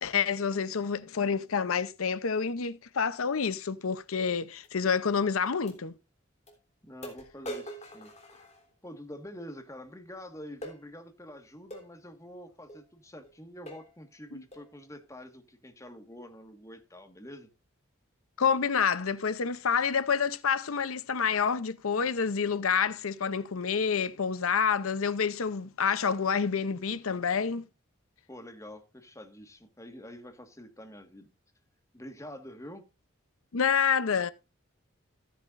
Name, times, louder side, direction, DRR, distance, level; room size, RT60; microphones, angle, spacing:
voice 1, 0.0-5.9 14.3-14.4 18.4-27.6 33.5-34.3, left 6 dB, 90° left, 0.7 m, -28 dB
sound 1, 4.6-4.7 5.7-5.8 6.5-6.6 7.0-9.0 10.6-10.8 11.7-11.9 12.7-12.8 13.2-13.4 13.7-14.0 14.5-14.7, right 1 dB, 30° left, 3.4 m, -43 dB
voice 2, 6.8-8.4 8.8-17.5 28.3-31.3 31.9-32.8, equal, 15° left, 1.6 m, -46 dB
15.0 x 10.5 x 2.6 m
head